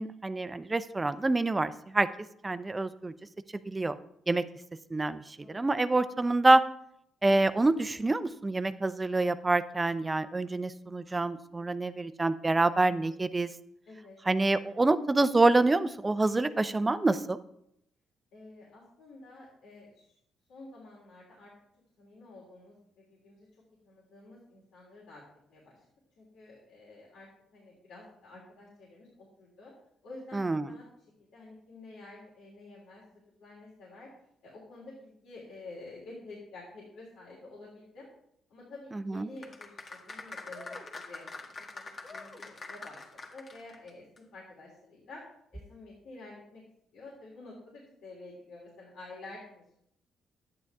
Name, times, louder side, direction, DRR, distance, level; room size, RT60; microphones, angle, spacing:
voice 1, 0.0-2.1 2.4-3.1 3.7-4.0 4.3-4.4 4.9-6.6 7.2-13.5 14.3-17.4 30.3-30.7 39.1-39.3, right 2 dB, 20° right, 13 dB, 0.6 m, -26 dB
voice 2, 5.4-5.8 13.9-14.2 18.3-20.1 20.5-21.5 22.0-23.5 23.8-25.2 25.5-25.8 26.2-29.7 30.0-30.8 31.2-33.0 33.4-34.1 34.4-38.1 38.5-40.8 41.1-45.2 45.5-46.6 46.9-49.8, left 2 dB, 80° left, -6 dB, 3.2 m, -49 dB
sound 1, 39.4-43.9 44.2-44.3, left 3 dB, 40° left, 1.8 m, -44 dB
11.0 x 9.5 x 3.5 m, 0.74 s
cardioid pair, 90°, 0 cm